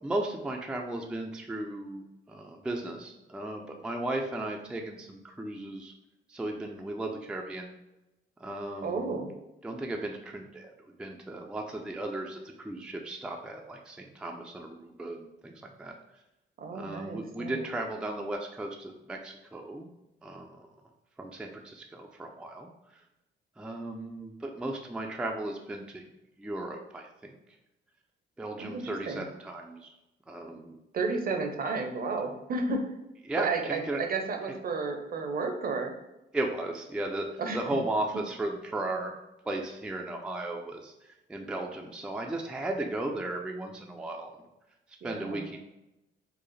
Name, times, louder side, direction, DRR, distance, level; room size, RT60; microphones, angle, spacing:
voice 1, 0.0-5.9 6.3-7.7 8.4-9.2 9.6-10.7 11.0-15.9 16.7-19.9 20.2-20.7 21.2-22.7 23.6-26.0 26.4-27.4 28.4-29.9 30.3-30.8 33.3-34.0 36.3-37.3 37.5-39.1 39.5-44.3 45.0-45.6, right 2 dB, 5° right, 2 dB, 0.4 m, -35 dB
voice 2, 8.8-9.3 16.6-17.7 28.6-29.2 30.9-32.9 33.3-35.9 37.4-37.6 45.0-45.5, right 4 dB, 50° right, 4 dB, 0.6 m, -32 dB
4.6 x 2.0 x 3.1 m, 0.93 s
cardioid pair, 90°, 20 cm